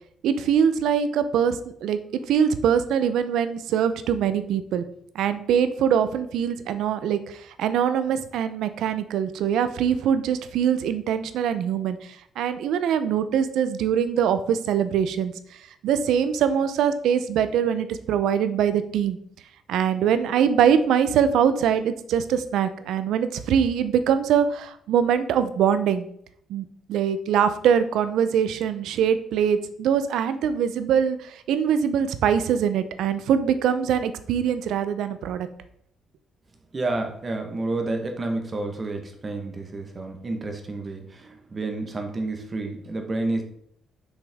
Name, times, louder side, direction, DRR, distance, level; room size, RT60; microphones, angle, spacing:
voice 1, 0.2-4.8 5.1-15.3 15.8-19.2 19.7-26.1 26.5-35.5, right 8 dB, 85° right, 11 dB, 0.6 m, -23 dB
voice 2, 36.7-43.4, right 2 dB, 25° right, 4 dB, 1.1 m, -30 dB
6.3 x 5.3 x 3.5 m, 0.67 s
cardioid pair, 140°, 0 cm